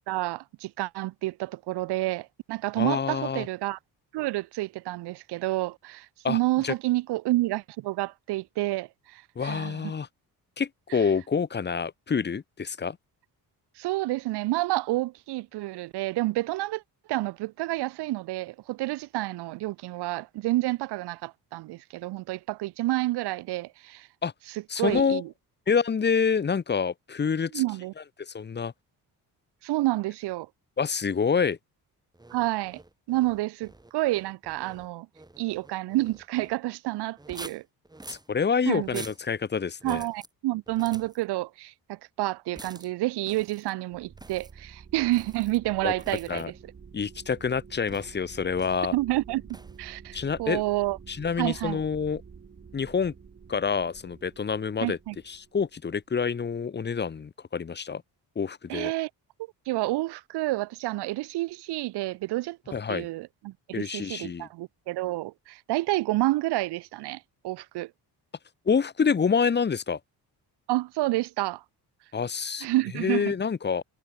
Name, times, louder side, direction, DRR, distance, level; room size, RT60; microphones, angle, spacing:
voice 1, 0.1-3.8 4.1-9.9 10.9-11.0 13.8-16.8 17.1-24.1 24.5-25.3 27.5-27.9 29.6-30.5 32.3-32.8 33.1-35.1 35.4-37.6 38.7-39.0 39.8-46.4 48.9-49.4 49.8-51.0 51.4-51.8 54.8-55.2 58.7-59.1 59.7-62.6 62.9-67.9 70.7-71.6 72.6-73.3, right 18 dB, 90° right, 0.6 m, -29 dB
voice 2, 2.8-3.5 6.2-6.7 9.4-10.1 10.6-13.0 24.2-24.3 24.7-25.2 25.7-27.6 28.2-28.7 30.8-31.6 38.1-40.0 45.8-45.9 46.3-46.5 46.9-48.9 50.1-50.6 51.1-52.2 52.7-53.1 53.5-55.0 55.3-58.0 58.3-58.9 62.7-63.1 63.7-64.5 68.7-70.0 72.1-72.7 72.9-73.8, left 6 dB, 25° left, 1.2 m, -27 dB
sound 1, 32.1-36.6 37.2-38.3 38.8-39.2 39.8-40.3 40.7-41.2 42.6-42.9 43.2-43.7 44.2-44.5 45.1-45.6 46.0-46.4 47.9-48.2 48.6-48.9 49.5-49.8, right 2 dB, 10° right, 4.5 m, -47 dB
sound 2, 43.9-56.2, right 6 dB, 30° right, 2.8 m, -49 dB
cardioid pair, 150°, 39 cm